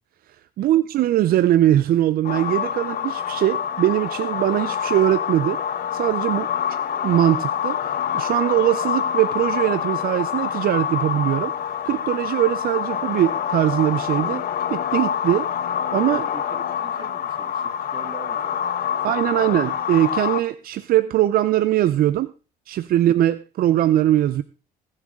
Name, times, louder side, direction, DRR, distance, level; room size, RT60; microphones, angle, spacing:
voice 1, 0.6-5.6 5.9-6.5 7.0-11.5 11.8-15.5 15.9-16.3 19.0-22.3 22.7-24.4, right 13 dB, 60° right, 0.6 m, -21 dB
sound 1, 2.2-20.4, left 8 dB, 60° left, 1.0 m, -26 dB
voice 2, 16.1-19.4, right 5 dB, 30° right, 2.7 m, -44 dB
21.5 x 7.4 x 3.7 m
cardioid pair, 110°, 17 cm